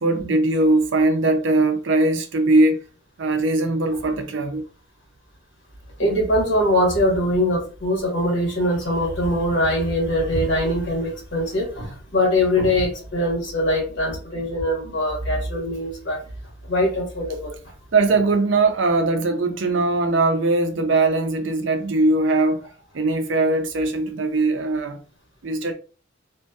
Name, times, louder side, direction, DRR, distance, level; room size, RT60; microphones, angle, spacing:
voice 1, 0.0-2.8 3.2-4.6 17.9-22.6 22.9-25.0 25.4-25.7, right 2 dB, 65° right, 0.5 m, -20 dB
voice 2, 6.0-16.2 16.7-17.6, left 1 dB, 65° left, 1.2 m, -22 dB
2.6 x 2.5 x 2.3 m
head